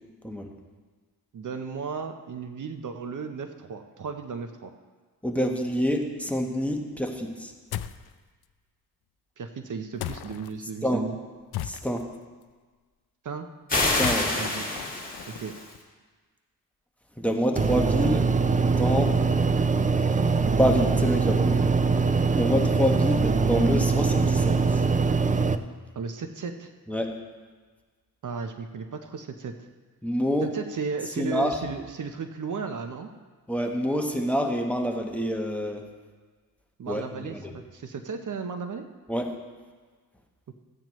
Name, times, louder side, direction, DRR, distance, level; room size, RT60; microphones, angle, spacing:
voice 1, 1.3-4.7 9.4-11.2 13.2-13.5 14.4-14.7 15.3-15.5 25.9-26.7 28.2-29.5 30.4-33.1 36.8-38.9, right 5 dB, 50° right, 6 dB, 0.7 m, -35 dB
voice 2, 5.2-7.5 10.8-11.0 11.6-12.0 14.0-14.3 17.2-18.3 18.6-19.2 20.6-21.7 22.3-24.8 26.9-27.1 30.0-30.5 31.2-31.6 33.5-35.8 36.9-37.5 39.1-39.4, equal, 5° left, 2 dB, 1.1 m, -27 dB
sound 1, 7.7-8.1 10.0-10.5 11.5-12.2 13.8-15.8, left 12 dB, 75° left, 0.5 m, -36 dB
sound 2, 13.7-15.7, left 2 dB, 20° left, 2.4 m, -27 dB
sound 3, 17.6-25.6, right 4 dB, 20° right, 0.4 m, -23 dB
15.0 x 8.9 x 3.1 m, 1.4 s
cardioid pair, 80°, 38 cm